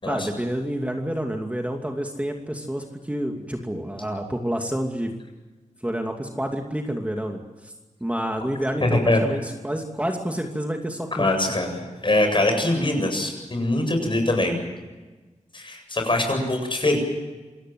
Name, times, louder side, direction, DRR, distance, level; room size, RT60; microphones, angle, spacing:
voice 1, 0.0-5.1 5.8-7.7 8.0-11.6, equal, 10° right, 2 dB, 2.6 m, -29 dB
voice 2, 8.8-9.2 11.2-14.6 15.5-17.0, left 1 dB, 40° left, 4 dB, 7.9 m, -23 dB
27.5 x 18.5 x 7.8 m, 1.2 s
wide cardioid pair, 75°, 13 cm